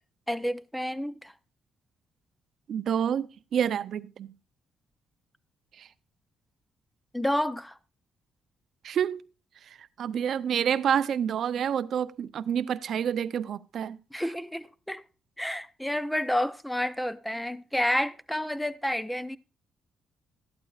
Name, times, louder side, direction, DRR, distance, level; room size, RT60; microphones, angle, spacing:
voice 1, 0.3-1.3 7.1-7.7 14.1-15.0 15.4-19.4, left 1 dB, 5° left, 0.7 m, -30 dB
voice 2, 2.7-4.3 5.8-5.9 8.8-9.2 9.7-14.0, right 8 dB, 65° right, 0.6 m, -28 dB
14.0 x 11.5 x 2.4 m
cardioid pair, 90°, 0 cm